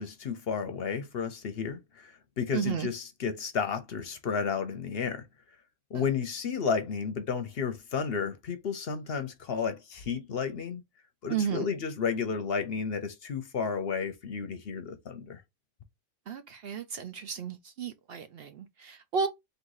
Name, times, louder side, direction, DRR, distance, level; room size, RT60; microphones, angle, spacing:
voice 1, 0.0-5.2 5.9-10.8 11.2-15.4, left 6 dB, 55° left, 0.9 m, -32 dB
voice 2, 2.5-2.9 5.9-6.0 11.3-11.7 16.3-19.3, right 6 dB, 60° right, 0.7 m, -33 dB
3.9 x 2.5 x 4.7 m
omnidirectional pair, 1.3 m